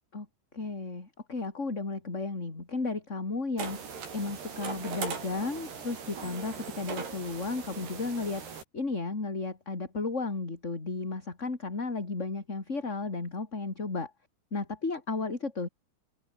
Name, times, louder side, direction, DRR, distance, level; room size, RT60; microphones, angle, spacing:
voice 1, 0.5-8.4 8.7-14.1 14.5-15.7, left 3 dB, 20° left, 3.1 m, -34 dB
sound 1, 3.6-8.6, right 6 dB, 90° right, 6.8 m, -39 dB
omnidirectional pair, 4.5 m